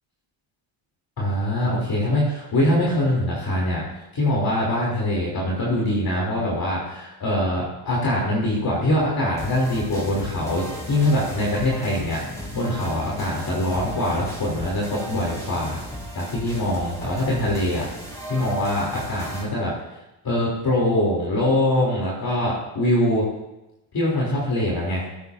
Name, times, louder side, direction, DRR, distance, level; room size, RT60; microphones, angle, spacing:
voice 1, 1.2-3.8 4.1-15.8 16.1-17.8 18.3-19.7 20.2-23.3 23.9-25.0, left 1 dB, 45° left, -5 dB, 3.3 m, -23 dB
sound 1, 9.3-19.4, equal, 5° left, 3.8 m, -36 dB
15.0 x 8.3 x 2.7 m, 0.93 s
cardioid pair, 95°, 48 cm